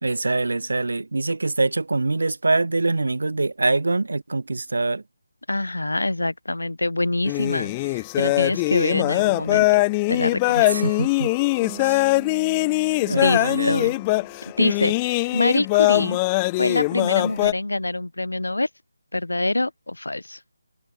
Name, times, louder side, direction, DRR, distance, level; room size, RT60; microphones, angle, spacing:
voice 1, 0.0-5.0 10.5-11.3 11.8-12.0 13.0-13.9, right 3 dB, 60° right, 3.2 m, -24 dB
voice 2, 5.5-9.8 10.1-10.9 13.1-13.9 14.6-16.2 16.6-18.7 19.1-20.4, left 2 dB, 70° left, 1.6 m, -25 dB
sound 1, 7.3-17.5, left 24 dB, 15° left, 0.5 m, -22 dB
Bass guitar, 11.6-15.3, right 20 dB, 15° right, 4.7 m, -45 dB
figure-of-eight pair, 155°, 0 cm